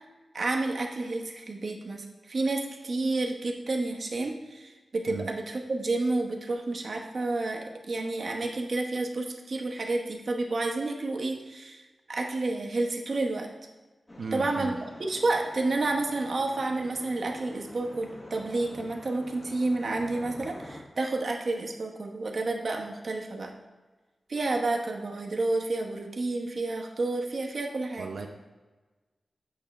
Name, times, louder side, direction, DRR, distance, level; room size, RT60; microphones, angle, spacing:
voice 1, 0.3-11.8 12.1-13.5 14.3-23.5 24.3-28.3, right 2 dB, 50° right, 2 dB, 0.9 m, -30 dB
sound 1, 14.1-20.8, left 1 dB, 25° left, 0.9 m, -46 dB
voice 2, 14.2-14.8 28.0-28.3, right 4 dB, 75° right, 3 dB, 0.6 m, -36 dB
8.5 x 3.5 x 5.8 m, 1.3 s
wide cardioid pair, 160°, 0 cm